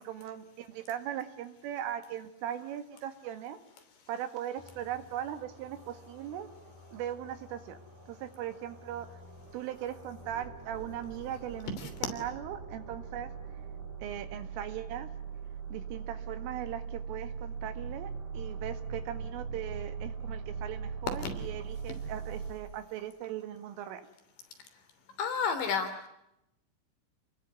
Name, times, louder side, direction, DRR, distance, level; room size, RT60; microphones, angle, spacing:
voice 1, 0.0-3.6 4.1-6.5 6.9-7.8 8.1-9.1 9.5-13.3 14.0-15.1 15.7-24.0, right 11 dB, 80° right, 10 dB, 4.4 m, -39 dB
sound 1, 4.6-22.5, right 5 dB, 40° right, 6.0 m, -42 dB
voice 2, 25.2-26.1, left 5 dB, 65° left, 7 dB, 5.3 m, -30 dB
29.0 x 21.0 x 9.8 m, 0.83 s
omnidirectional pair, 5.8 m